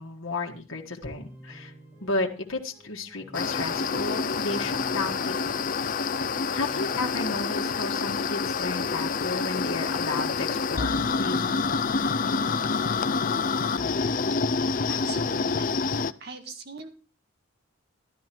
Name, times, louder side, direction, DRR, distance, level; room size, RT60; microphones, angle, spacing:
voice 1, 0.0-1.7 2.0-5.6 6.5-11.6, left 3 dB, 85° left, 0 dB, 1.8 m, -33 dB
sound 1, 0.7-7.2, right 1 dB, 5° right, 4.1 m, -50 dB
sound 2, 3.3-16.1, left 4 dB, 40° left, 0.5 m, -27 dB
voice 2, 14.9-16.9, right 3 dB, 50° right, 6 dB, 1.8 m, -41 dB
12.5 x 12.0 x 4.5 m, 0.36 s
head